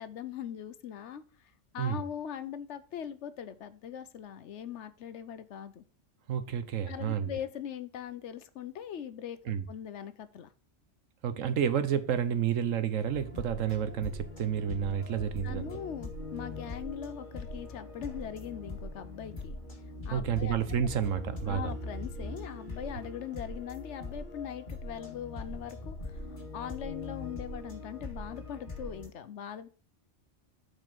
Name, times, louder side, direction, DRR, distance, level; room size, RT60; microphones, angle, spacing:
voice 1, 0.0-5.8 6.9-9.4 9.7-10.5 15.4-19.6 20.0-20.6 21.5-26.2 26.5-29.7, left 9 dB, 70° left, 1.0 m, -41 dB
voice 2, 6.3-7.3 9.5-9.6 11.2-15.7 20.1-21.7, right 8 dB, 90° right, 1.3 m, -30 dB
sound 1, 13.1-29.1, left 2 dB, 40° left, 2.1 m, -41 dB
7.5 x 4.9 x 6.0 m
omnidirectional pair, 1.3 m